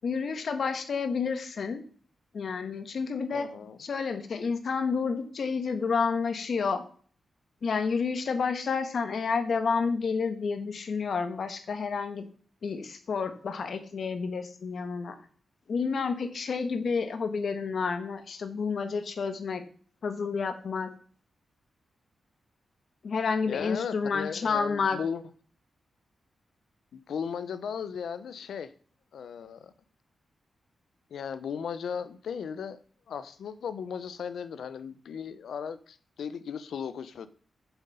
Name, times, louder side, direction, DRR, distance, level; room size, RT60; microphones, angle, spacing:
voice 1, 0.0-1.8 2.3-3.5 3.8-6.8 7.6-12.2 12.6-15.2 15.7-19.6 20.0-20.9 23.0-25.0, left 5 dB, 60° left, 9 dB, 1.4 m, -30 dB
voice 2, 3.3-3.8 23.5-25.2 26.9-28.7 29.1-29.7 31.1-32.8 33.1-37.3, left 7 dB, 85° left, 13 dB, 0.8 m, -36 dB
7.6 x 7.0 x 5.5 m, 0.44 s
wide cardioid pair, 120°, 0 cm